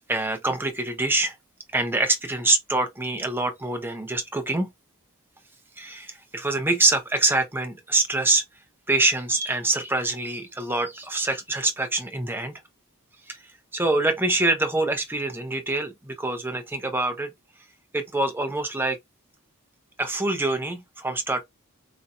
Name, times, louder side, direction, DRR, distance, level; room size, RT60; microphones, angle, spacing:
voice 1, 0.1-1.3 1.7-4.7 5.8-8.4 8.9-12.5 13.3-17.3 17.9-19.0 20.0-21.4, right 2 dB, 10° right, 0.8 m, -25 dB
4.1 x 2.6 x 2.4 m
head